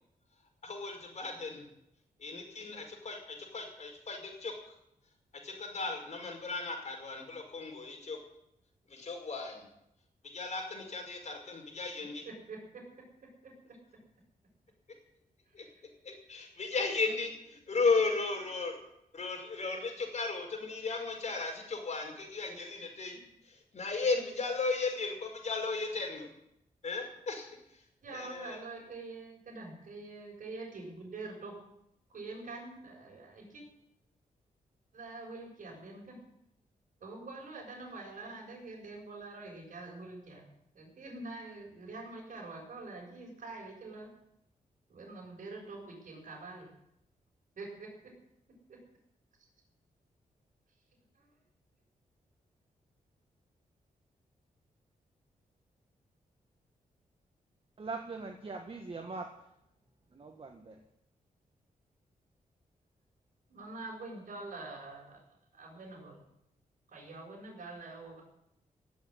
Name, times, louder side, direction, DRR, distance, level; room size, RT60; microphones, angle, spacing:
voice 1, 0.6-1.6 2.2-4.5 5.3-8.2 8.9-9.6 10.2-12.2 15.5-15.7 16.0-18.8 19.1-26.3 26.8-27.8 28.1-28.6, left 4 dB, 55° left, 3 dB, 5.3 m, -35 dB
voice 2, 12.2-12.8 13.4-13.5 15.6-15.7 28.0-31.6 32.1-33.6 34.9-36.2 37.0-40.5 40.7-44.1 44.9-46.7 47.6-47.9 48.7-48.8 63.5-65.2 65.5-66.2 66.9-68.2, right 3 dB, 60° right, -3 dB, 6.8 m, -45 dB
voice 3, 57.8-59.3 60.1-60.8, right 4 dB, 40° right, 3 dB, 1.7 m, -41 dB
17.5 x 8.2 x 9.6 m, 0.80 s
wide cardioid pair, 100°, 14 cm